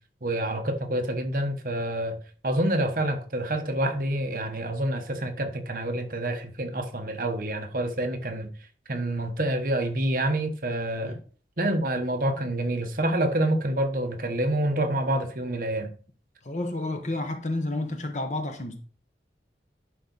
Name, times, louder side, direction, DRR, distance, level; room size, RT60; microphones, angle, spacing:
voice 1, 0.2-2.2 2.4-8.5 8.9-11.2 11.6-15.9, right 1 dB, 50° right, 1.1 m, -27 dB
voice 2, 16.4-18.8, left 2 dB, 40° left, 1.0 m, -30 dB
11.0 x 4.0 x 4.0 m
head